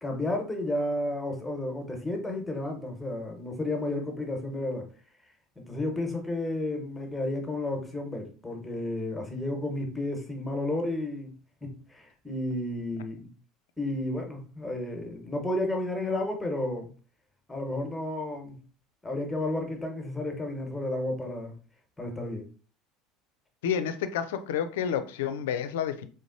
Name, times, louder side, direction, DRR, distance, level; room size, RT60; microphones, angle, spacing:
voice 1, 0.0-4.9 5.7-11.3 11.6-13.3 13.8-16.9 17.5-18.6 19.0-21.5 22.0-22.5, left 1 dB, 10° left, 1.1 m, -32 dB
voice 2, 23.6-26.1, left 8 dB, 65° left, 0.4 m, -29 dB
3.9 x 3.5 x 2.6 m
figure-of-eight pair, 70°, 0 cm